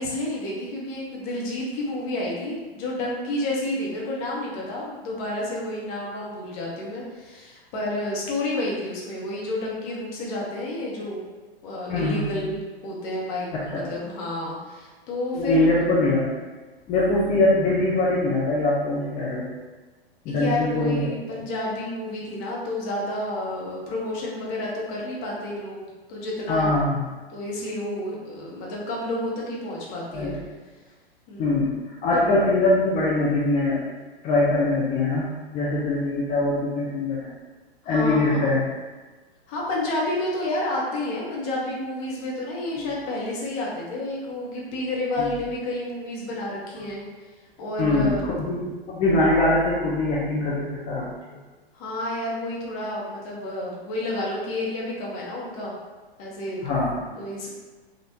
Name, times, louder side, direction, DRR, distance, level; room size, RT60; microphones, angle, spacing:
voice 1, 0.0-11.2 11.6-12.6 12.8-15.7 20.3-26.7 27.3-30.3 31.3-31.6 32.1-32.2 37.8-38.6 39.5-47.0 47.6-48.2 51.7-55.8 56.2-56.7 57.1-57.5, left 1 dB, 40° left, -4 dB, 1.0 m, -30 dB
voice 2, 11.9-12.5 13.5-13.8 15.3-16.3 16.9-19.5 20.2-21.1 26.5-27.0 30.1-30.4 31.4-33.8 34.2-37.2 37.9-38.6 42.8-42.9 45.2-45.3 47.8-51.0 56.6-56.9, left 2 dB, 20° left, -6 dB, 0.5 m, -22 dB
3.5 x 2.4 x 2.8 m, 1.3 s
hypercardioid pair, 110°, 31 cm